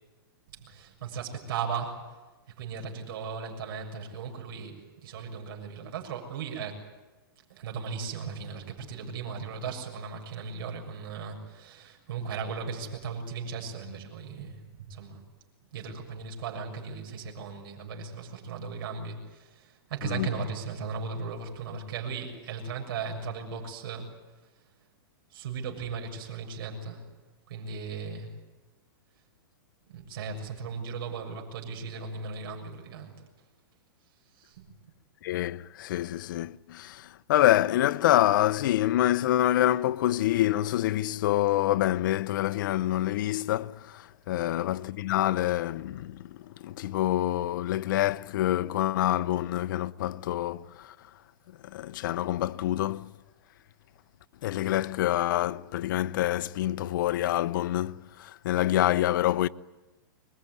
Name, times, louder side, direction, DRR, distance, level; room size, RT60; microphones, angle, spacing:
voice 1, 0.5-2.2 2.5-6.9 7.5-15.2 15.7-24.1 25.3-27.1 27.5-28.3 29.9-33.2 34.3-34.7 44.3-44.6, right 5 dB, 65° right, 7.0 m, -37 dB
voice 2, 35.2-50.9 51.6-53.1 54.4-59.5, left 14 dB, 55° left, 0.8 m, -26 dB
25.0 x 22.0 x 9.6 m
hypercardioid pair, 150°, 13 cm